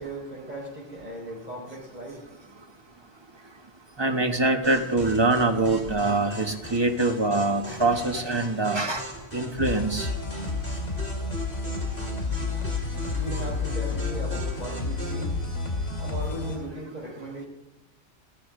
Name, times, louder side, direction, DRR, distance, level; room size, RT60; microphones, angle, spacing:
voice 1, 0.0-2.2 13.1-15.3 16.0-17.4, right 1 dB, 40° right, -3 dB, 5.1 m, -37 dB
voice 2, 4.0-9.0 9.3-10.1, right 2 dB, 25° right, 4 dB, 1.3 m, -24 dB
sound 1, 4.6-15.3, equal, 10° left, 3.7 m, -40 dB
sound 2, 9.6-16.5, left 3 dB, 85° left, 2.9 m, -30 dB
14.5 x 14.0 x 3.8 m, 0.90 s
omnidirectional pair, 1.2 m